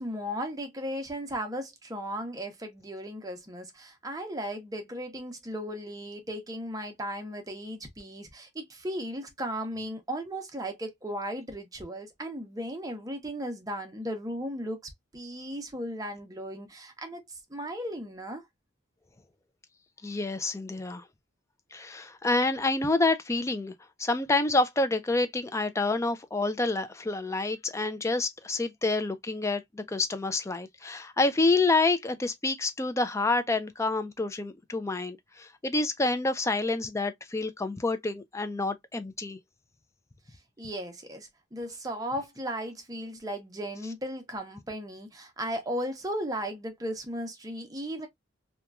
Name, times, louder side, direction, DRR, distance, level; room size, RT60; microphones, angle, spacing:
voice 1, 0.0-18.4 40.6-48.1, equal, 20° right, 0.7 m, -36 dB
voice 2, 20.0-21.0 21.7-23.7 24.0-39.4, left 2 dB, 15° left, 0.4 m, -28 dB
2.9 x 2.2 x 2.3 m
head